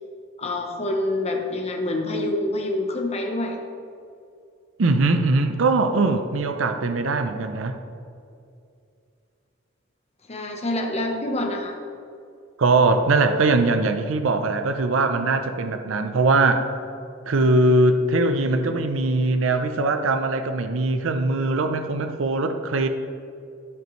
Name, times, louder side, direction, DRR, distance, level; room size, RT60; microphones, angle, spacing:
voice 1, 0.4-3.6 10.3-11.7, left 1 dB, 30° left, 2 dB, 1.0 m, -26 dB
voice 2, 4.8-7.8 12.6-16.7 17.3-22.9, right 2 dB, 70° right, 7 dB, 0.5 m, -21 dB
13.0 x 5.5 x 3.1 m, 2.5 s
head